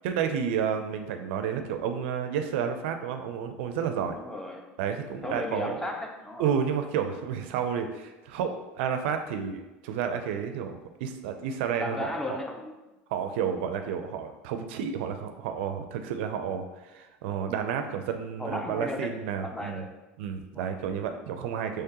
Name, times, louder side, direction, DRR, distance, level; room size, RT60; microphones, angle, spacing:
voice 1, 0.0-4.2 4.8-5.8 6.4-12.1 13.1-19.8 20.2-21.8, right 7 dB, 80° right, 7 dB, 0.4 m, -31 dB
voice 2, 4.1-4.7 5.2-6.5 11.8-12.7 18.4-19.1 19.4-19.9 20.5-20.7, left 1 dB, 10° left, 2 dB, 0.5 m, -35 dB
3.5 x 3.2 x 2.9 m, 1.0 s
supercardioid pair, 105°, 6 cm